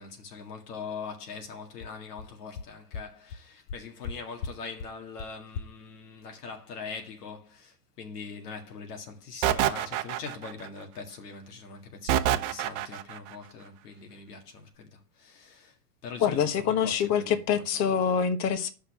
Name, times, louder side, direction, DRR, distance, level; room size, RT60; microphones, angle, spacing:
voice 1, 0.0-17.9, left 5 dB, 75° left, 2.0 m, -42 dB
sound 1, 1.4-1.5 1.8-1.9 2.2-2.3 2.6-2.7 2.9-3.0 3.3-3.4 3.7-4.1 4.4-4.5 4.8-4.9 5.2-5.3 5.5-5.6, left 5 dB, 60° left, 0.9 m, -36 dB
sound 2, 9.4-10.7 12.1-13.2, right 12 dB, 55° right, 0.8 m, -26 dB
voice 2, 16.2-18.7, left 7 dB, 35° left, 1.3 m, -25 dB
6.3 x 5.7 x 6.0 m
hypercardioid pair, 115°, 46 cm